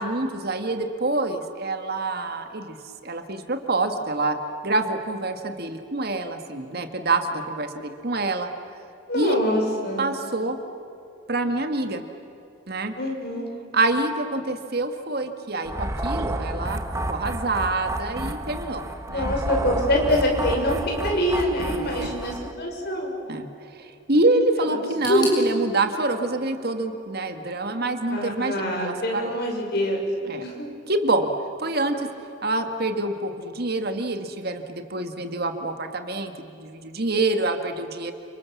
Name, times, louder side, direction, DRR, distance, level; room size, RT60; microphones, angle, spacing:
voice 1, 0.0-2.8 3.0-4.4 4.6-8.5 9.1-9.4 10.0-10.6 11.3-12.0 12.7-12.9 13.7-16.8 17.1-19.4 21.7-22.1 23.3-23.5 23.8-29.3 30.3-30.5 30.9-31.3 31.6-32.1 32.4-38.1, right 2 dB, 50° right, 6 dB, 1.9 m, -26 dB
voice 2, 9.1-10.1 13.0-13.5 19.1-20.8 21.0-23.1 24.6-24.8 25.0-25.4 28.1-30.0 30.4-30.7, equal, 55° left, 1 dB, 6.3 m, -25 dB
sound 1, 15.6-22.5, right 1 dB, 15° right, 1.1 m, -30 dB
sound 2, 25.0-27.9 28.1-28.9 29.2-29.3 30.2-30.3, left 1 dB, 20° left, 7.3 m, -40 dB
30.0 x 27.0 x 7.3 m, 2.8 s
head